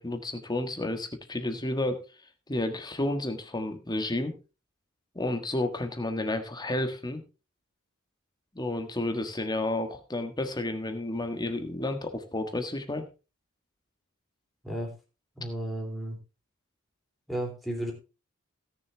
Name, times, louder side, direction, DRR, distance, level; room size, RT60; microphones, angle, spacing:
voice 1, 0.0-2.0 2.5-4.3 5.1-7.2 8.5-13.1, left 1 dB, 20° left, 6 dB, 1.4 m, -31 dB
voice 2, 15.3-16.2 17.3-17.9, right 1 dB, ahead, 0 dB, 3.3 m, -33 dB
17.0 x 6.9 x 3.4 m, 0.31 s
head